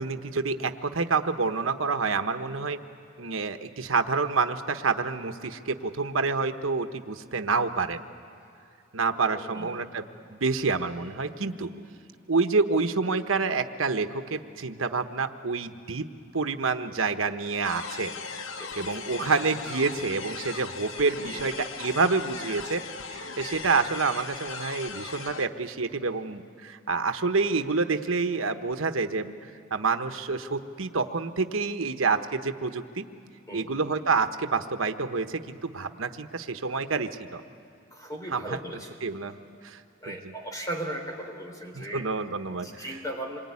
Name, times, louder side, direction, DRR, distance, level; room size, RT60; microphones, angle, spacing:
voice 1, 0.0-2.8 3.2-8.0 8.9-10.0 10.3-11.7 12.3-16.0 16.3-18.1 18.8-22.8 23.1-33.0 33.5-37.4 38.3-38.6 39.0-39.3 39.6-39.8 40.1-40.2 41.7-42.8, right 4 dB, 90° right, 8 dB, 1.1 m, -28 dB
voice 2, 9.1-9.8 18.5-19.1 21.1-21.4 33.5-33.7 37.9-39.4 40.0-42.1 42.6-43.4, right 1 dB, 20° left, 2 dB, 3.6 m, -38 dB
sound 1, 17.6-25.5, left 5 dB, 75° left, 1.1 m, -38 dB
27.0 x 23.0 x 9.7 m, 2.5 s
head